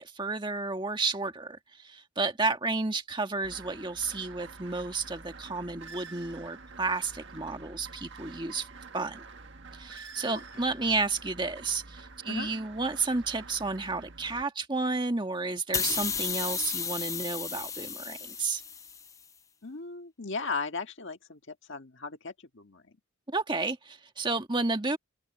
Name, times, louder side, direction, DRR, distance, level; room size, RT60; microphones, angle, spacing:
voice 1, 0.0-8.7 8.9-9.2 9.7-18.6 23.3-25.0, right 3 dB, 20° right, 1.7 m, -31 dB
sound 1, 3.4-14.4, right 4 dB, 55° right, 1.6 m, -47 dB
sound 2, 15.7-19.1, left 6 dB, 15° left, 0.5 m, -33 dB
voice 2, 19.6-22.9, left 4 dB, 55° left, 1.7 m, -37 dB
open air
head